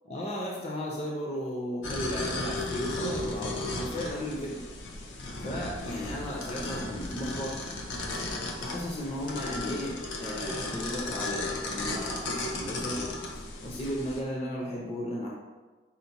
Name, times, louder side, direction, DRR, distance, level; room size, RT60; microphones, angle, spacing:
voice 1, 0.1-4.6 5.4-7.6 8.3-13.0 13.6-15.3, equal, 35° left, -3 dB, 0.5 m, -35 dB
sound 1, 1.8-14.2, left 2 dB, 85° left, 0.7 m, -35 dB
5.6 x 2.1 x 4.0 m, 1.3 s
head